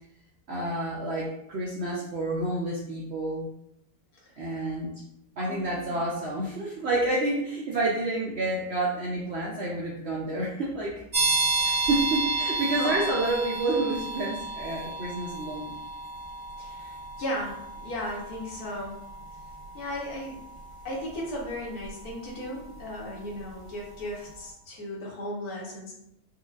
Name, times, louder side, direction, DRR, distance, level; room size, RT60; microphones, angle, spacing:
voice 1, 0.5-3.5 4.4-4.9 5.4-11.0 11.6-15.7, right 2 dB, 70° right, -4 dB, 0.6 m, -29 dB
voice 2, 4.2-4.6 5.4-6.0 12.8-13.2 16.6-19.0 19.7-20.4 20.8-25.9, left 1 dB, 65° left, -3 dB, 1.4 m, -36 dB
sound 1, 11.1-23.7, right 3 dB, 45° right, 1.5 m, -32 dB
4.6 x 2.4 x 2.4 m, 0.77 s
omnidirectional pair, 1.8 m